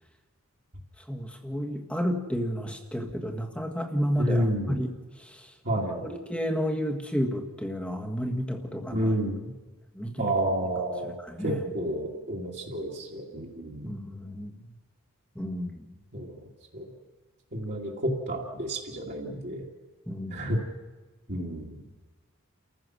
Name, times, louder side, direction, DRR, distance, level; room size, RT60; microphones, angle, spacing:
voice 1, 1.1-4.9 5.9-9.1 9.9-10.3 11.3-11.6 13.8-14.5 15.3-15.8 20.1-20.3, equal, 5° left, 3 dB, 1.6 m, -31 dB
voice 2, 4.2-4.8 5.6-6.0 8.9-9.5 10.2-11.1 11.4-13.9 16.1-16.4 16.7-16.9 17.5-19.7 20.3-20.6 21.3-21.7, right 1 dB, 45° right, -5 dB, 2.4 m, -30 dB
29.5 x 15.0 x 6.4 m, 1.3 s
head